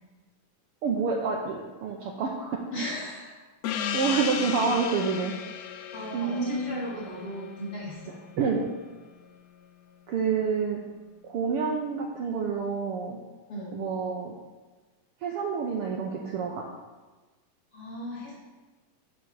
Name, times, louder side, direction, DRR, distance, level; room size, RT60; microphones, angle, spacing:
voice 1, 0.8-2.6 3.9-5.4 6.1-6.9 8.4-8.6 10.1-10.8 11.2-13.2 13.7-14.3 15.2-16.7, right 5 dB, 90° right, 0 dB, 1.2 m, -28 dB
voice 2, 2.7-3.3 5.9-8.2 13.5-13.8 17.7-18.3, equal, 45° left, -6 dB, 3.5 m, -37 dB
Gong, 3.6-8.7, left 8 dB, 80° left, 1.6 m, -35 dB
11.5 x 5.2 x 4.9 m, 1.2 s
omnidirectional pair, 3.6 m